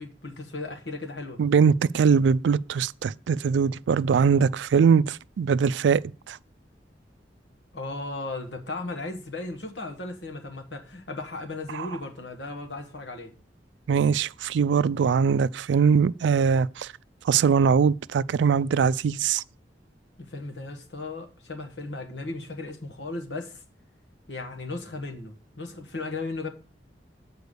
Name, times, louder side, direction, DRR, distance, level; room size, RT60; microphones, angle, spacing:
voice 1, 0.0-1.4 7.7-13.3 20.2-23.6 24.3-26.5, left 2 dB, 85° left, 1.5 m, -36 dB
voice 2, 1.4-6.4 11.7-11.9 13.9-16.9 17.2-19.4, right 6 dB, 90° right, 0.3 m, -22 dB
8.1 x 4.7 x 6.7 m
head